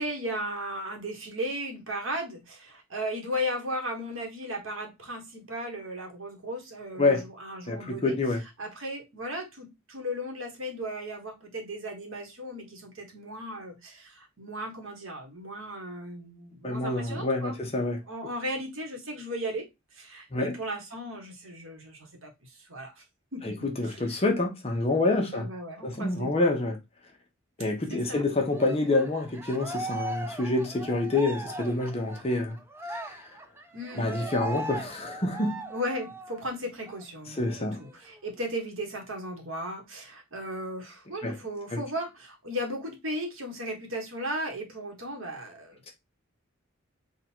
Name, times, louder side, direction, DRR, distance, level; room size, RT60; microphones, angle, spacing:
voice 1, 0.0-8.1 8.6-17.6 18.1-19.7 19.9-23.0 23.3-24.2 25.3-26.5 27.9-28.3 33.7-34.1 35.7-45.9, equal, 75° right, 1.3 m, -36 dB
voice 2, 7.7-8.4 16.6-18.0 20.3-20.5 23.4-25.5 25.8-26.8 27.6-32.6 32.9-33.2 33.9-35.6 37.4-37.8 41.2-41.4 41.7-41.8, left 2 dB, 30° left, 0.9 m, -27 dB
Cheering, 28.5-36.5 36.9-37.0 37.4-38.4, right 2 dB, 10° right, 0.4 m, -39 dB
3.7 x 2.4 x 4.4 m
head